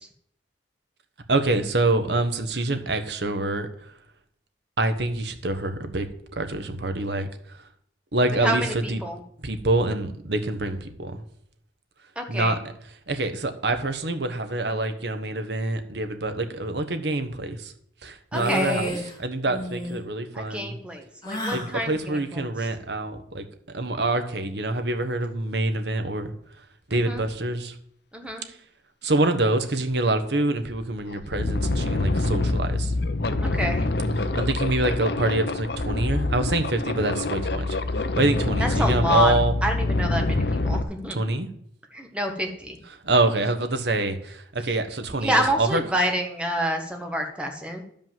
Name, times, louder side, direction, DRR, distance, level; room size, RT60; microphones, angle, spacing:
voice 1, 1.3-3.7 4.8-6.1 6.4-7.3 8.1-8.6 8.9-9.0 9.4-11.2 12.3-12.6 13.1-17.7 18.0-18.9 19.2-20.8 21.5-26.3 26.9-27.7 29.0-32.9 34.3-39.5 41.1-41.5 43.0-45.8, right 2 dB, 65° right, 8 dB, 1.2 m, -26 dB
voice 2, 8.4-9.2 12.1-12.6 18.3-19.0 20.3-22.7 26.9-27.2 28.1-28.5 33.4-33.9 38.6-41.2 41.9-42.8 45.2-47.8, equal, 5° right, 3 dB, 1.5 m, -28 dB
sound 1, 18.3-19.2 19.5-20.0 21.2-21.7, left 1 dB, 20° left, 2.2 m, -30 dB
sound 2, 30.4-30.5 30.9-40.8, left 2 dB, 60° left, 0.8 m, -26 dB
11.0 x 5.4 x 7.4 m, 0.66 s
head